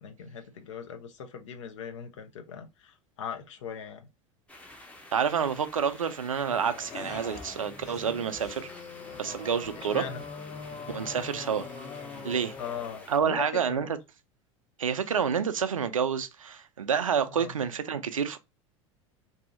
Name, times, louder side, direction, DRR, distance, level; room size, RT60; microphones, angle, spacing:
voice 1, 0.0-4.1 9.8-10.2 12.6-13.9 17.3-17.5, left 7 dB, 65° left, 0.7 m, -39 dB
sound 1, 4.5-13.2, left 1 dB, 10° left, 0.7 m, -50 dB
voice 2, 5.1-8.7 9.2-10.0 10.9-11.7 12.2-12.5 13.1-13.9 14.8-18.4, right 7 dB, 80° right, 0.4 m, -28 dB
sound 2, 6.5-13.1, left 4 dB, 45° left, 1.2 m, -42 dB
2.7 x 2.7 x 2.5 m
figure-of-eight pair, 80°, 17 cm